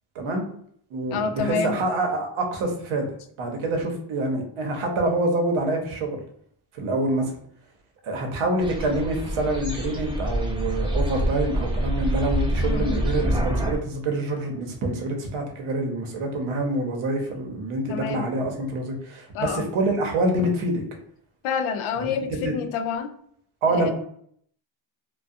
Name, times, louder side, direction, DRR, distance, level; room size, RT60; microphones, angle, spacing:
voice 1, 0.1-0.5 0.9-3.1 3.4-6.2 6.7-7.3 8.0-20.8 22.0-22.1 22.4-22.5 23.6-23.9, right 2 dB, 75° right, 2 dB, 0.8 m, -26 dB
voice 2, 1.1-1.8 12.6-13.0 17.9-18.3 19.3-19.7 21.4-23.1 23.7-23.9, left 6 dB, 75° left, 6 dB, 0.6 m, -28 dB
sound 1, 8.6-13.8, right 1 dB, 10° right, 0.5 m, -26 dB
2.3 x 2.2 x 2.6 m, 0.64 s
cardioid pair, 90°, 49 cm